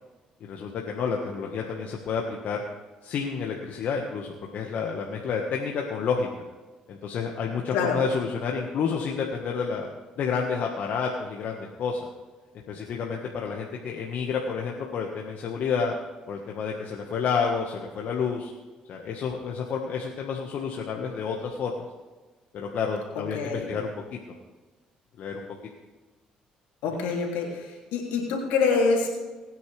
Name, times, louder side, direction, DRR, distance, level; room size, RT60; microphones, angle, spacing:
voice 1, 0.4-2.6 3.0-6.3 6.9-9.9 10.2-12.1 12.7-15.9 16.3-18.5 18.9-21.7 22.5-24.2 25.2-25.4, left 6 dB, 65° left, 0 dB, 1.6 m, -30 dB
voice 2, 23.3-23.7 26.8-29.1, left 4 dB, 80° left, -1 dB, 3.1 m, -25 dB
21.0 x 9.4 x 3.5 m, 1.3 s
hypercardioid pair, 60°, 3 cm